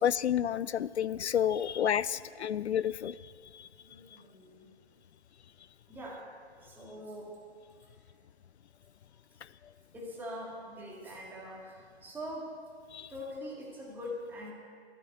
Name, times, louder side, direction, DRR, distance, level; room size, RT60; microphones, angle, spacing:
voice 1, 0.0-3.7 12.9-13.1, left 9 dB, 80° left, 19 dB, 0.5 m, -30 dB
voice 2, 1.8-2.2 3.5-4.7 5.9-7.4 7.9-8.0 9.9-12.6 13.1-14.5, equal, 5° right, -3 dB, 2.1 m, -43 dB
12.5 x 10.5 x 7.9 m, 2.1 s
hypercardioid pair, 150°, 33 cm